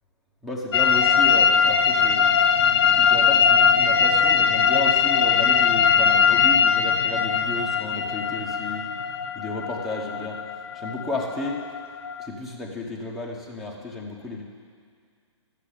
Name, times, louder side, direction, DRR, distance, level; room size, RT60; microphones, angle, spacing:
voice 1, 0.4-2.3 2.8-8.8 9.3-10.4 10.7-11.6 12.2-14.4, left 2 dB, ahead, -2 dB, 1.1 m, -32 dB
sound 1, 0.7-12.3, left 6 dB, 55° left, 0.8 m, -20 dB
12.0 x 7.6 x 8.5 m, 2.1 s
hypercardioid pair, 160°, 16 cm